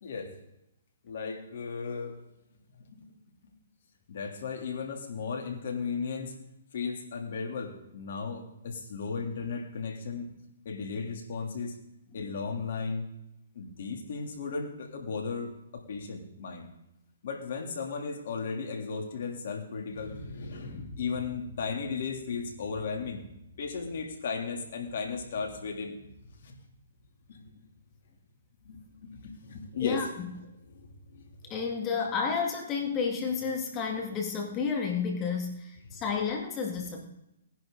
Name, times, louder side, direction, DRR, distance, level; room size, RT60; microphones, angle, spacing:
voice 1, 0.0-0.3 1.0-2.2 2.8-3.1 3.4-3.5 4.1-6.4 6.7-10.3 10.6-11.8 12.1-13.1 13.5-16.7 17.2-23.2 23.6-26.0 26.3-26.6 27.3-27.6 28.6-30.1 30.6-31.5 35.9-36.0, left 5 dB, 60° left, 2 dB, 3.2 m, -36 dB
voice 2, 20.6-20.9 29.8-30.3 31.4-37.1, left 5 dB, 25° left, 1 dB, 2.2 m, -31 dB
19.0 x 10.5 x 4.0 m, 0.84 s
hypercardioid pair, 140°, 0 cm